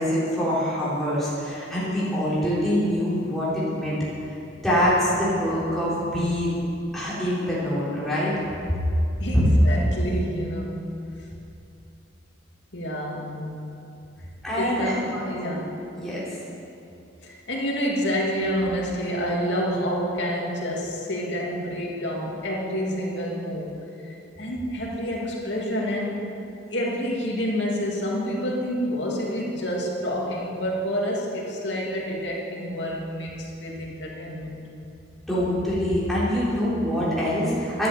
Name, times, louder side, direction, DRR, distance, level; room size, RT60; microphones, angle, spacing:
voice 1, 0.0-4.0 4.6-6.5 6.9-8.3 14.4-15.2 15.5-15.6 16.0-16.2 35.3-37.9, equal, ahead, -10 dB, 3.7 m, -25 dB
voice 2, 9.2-10.9 12.7-13.7 14.5-15.8 17.2-23.7 24.0-26.2 26.7-34.5, equal, 70° left, -3 dB, 2.8 m, -28 dB
13.0 x 11.0 x 7.5 m, 2.7 s
head